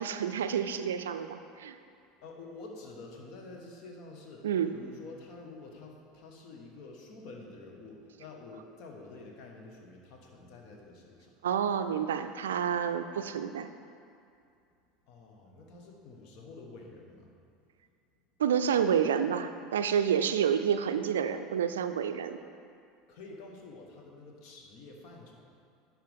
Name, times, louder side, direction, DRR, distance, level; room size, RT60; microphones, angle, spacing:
voice 1, 0.0-1.8 4.4-4.7 11.4-13.7 18.4-22.4, right 8 dB, 80° right, 9 dB, 0.3 m, -29 dB
voice 2, 2.2-4.5 4.7-11.3 15.1-17.3 20.3-20.4 23.1-25.5, left 3 dB, 60° left, 1 dB, 1.2 m, -48 dB
10.5 x 4.8 x 3.5 m, 2.5 s
hypercardioid pair, 80°, 0 cm